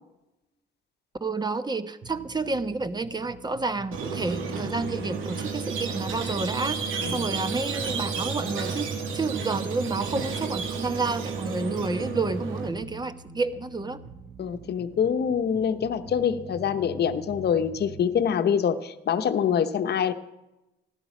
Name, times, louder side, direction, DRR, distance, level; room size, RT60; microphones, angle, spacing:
voice 1, 1.2-14.0, right 3 dB, 20° right, 11 dB, 1.1 m, -30 dB
sound 1, 2.0-18.0, right 3 dB, 65° right, 1.9 m, -46 dB
Squeak, 3.9-12.7, right 5 dB, 85° right, 2.1 m, -32 dB
voice 2, 14.4-20.1, left 7 dB, 55° left, 9 dB, 1.0 m, -25 dB
16.0 x 12.0 x 6.0 m, 0.97 s
cardioid pair, 90°, 20 cm